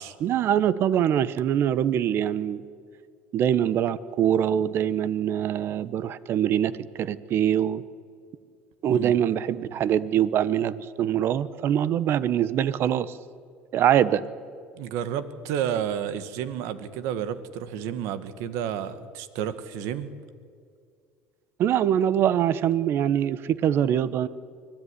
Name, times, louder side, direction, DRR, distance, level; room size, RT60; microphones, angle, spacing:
voice 1, 0.2-2.6 3.3-6.7 7.0-7.8 8.8-13.2 13.7-14.2 21.6-24.3, right 10 dB, 50° right, 17 dB, 1.0 m, -23 dB
voice 2, 14.8-20.1, right 9 dB, 75° right, 13 dB, 1.7 m, -31 dB
24.5 x 16.0 x 9.9 m, 2.2 s
supercardioid pair, 115°, 5 cm